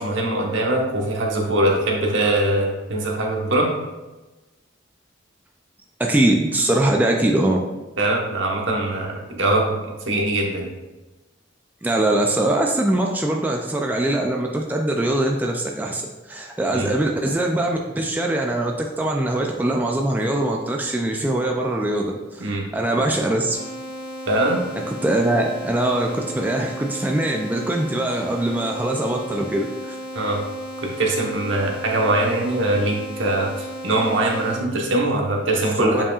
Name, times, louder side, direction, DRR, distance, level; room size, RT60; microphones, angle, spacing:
voice 1, 0.0-3.7 8.0-10.7 16.7-16.9 22.4-22.7 24.3-24.6 30.1-30.4 30.8-36.0, right 1 dB, 70° right, -1 dB, 1.2 m, -22 dB
voice 2, 6.0-7.6 11.8-16.0 16.3-23.7 25.0-30.0 35.8-36.0, right 1 dB, 10° right, 0 dB, 0.4 m, -22 dB
sound 1, 23.5-34.6, equal, 30° right, 1.4 m, -35 dB
7.2 x 5.6 x 2.4 m, 1.1 s
head